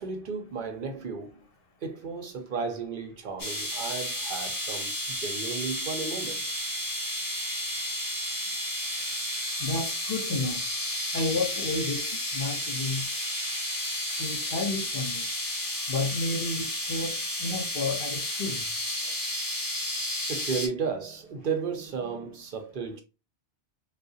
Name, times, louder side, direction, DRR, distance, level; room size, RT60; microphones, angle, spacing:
voice 1, 0.0-1.4 1.8-6.6 20.3-23.0, right 5 dB, 50° right, 0.8 m, -34 dB
sound 1, 3.4-20.7, left 1 dB, 20° left, 0.7 m, -32 dB
voice 2, 9.6-10.7 11.1-13.1 14.2-15.3 15.9-18.7, left 3 dB, 55° left, 0.9 m, -31 dB
3.6 x 2.4 x 2.6 m
omnidirectional pair, 1.2 m